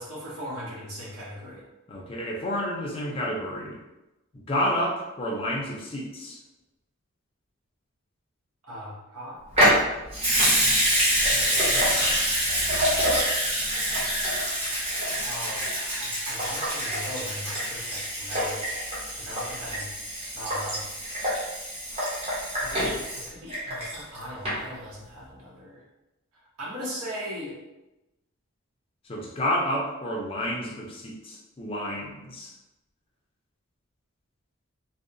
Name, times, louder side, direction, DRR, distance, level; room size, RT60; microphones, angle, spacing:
voice 1, 0.0-1.6 8.6-9.8 11.3-12.2 15.2-18.7 19.1-19.9 20.3-20.8 22.6-22.8 23.1-25.8 26.6-27.6, equal, 90° right, -4 dB, 0.9 m, -39 dB
voice 2, 1.9-3.8 4.5-6.4 29.1-32.5, equal, 25° left, -2 dB, 0.4 m, -30 dB
Water tap faucet / Sink (filling or washing) / Liquid, 9.5-24.2 24.4-24.5, equal, 30° right, 0.8 m, -26 dB
2.7 x 2.0 x 2.5 m, 0.99 s
head